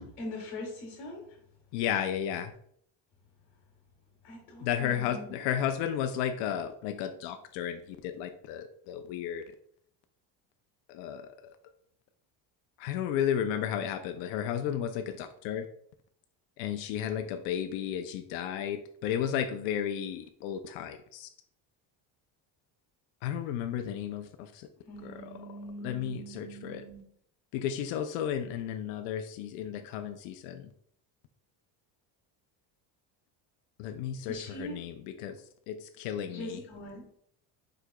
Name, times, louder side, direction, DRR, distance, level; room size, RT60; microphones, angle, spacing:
voice 1, 0.0-1.4 4.2-5.4 24.9-27.0 34.3-34.8 36.3-37.2, left 1 dB, 35° left, -2 dB, 1.6 m, -42 dB
voice 2, 1.7-2.5 4.6-9.4 10.9-11.6 12.8-15.7 16.6-21.3 23.2-24.7 25.0-25.3 25.8-26.8 27.5-30.7 33.8-35.4 35.7-36.6, left 9 dB, 75° left, 7 dB, 0.6 m, -33 dB
5.0 x 4.6 x 2.2 m, 0.65 s
cardioid pair, 170°, 44 cm